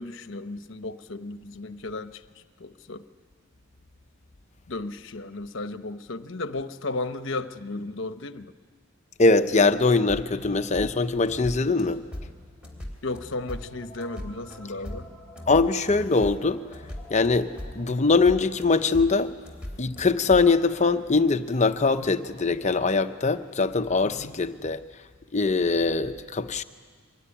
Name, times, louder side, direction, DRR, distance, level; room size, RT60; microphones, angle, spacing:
voice 1, 0.0-2.2 2.6-3.0 4.7-8.5 13.0-15.0 24.0-24.3, left 2 dB, 60° left, 1.0 m, -34 dB
voice 2, 9.2-12.0 15.5-16.6 17.1-19.3 19.8-24.8 25.3-26.6, left 3 dB, 35° left, 0.8 m, -22 dB
sound 1, 10.1-20.6, left 1 dB, 5° right, 3.4 m, -40 dB
24.5 x 20.5 x 10.0 m
head